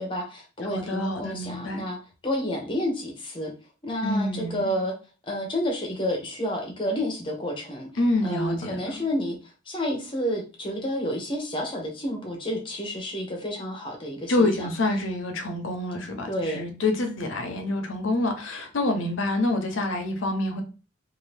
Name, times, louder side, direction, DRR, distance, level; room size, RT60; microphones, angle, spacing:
voice 1, 0.0-2.0 2.2-3.5 3.8-4.9 5.2-7.9 8.2-14.7 16.3-16.6, equal, 25° left, 0.8 m, -30 dB
voice 2, 0.7-1.8 4.0-4.7 8.0-8.8 14.3-20.6, left 2 dB, 85° left, 0.7 m, -27 dB
2.6 x 2.5 x 3.3 m
head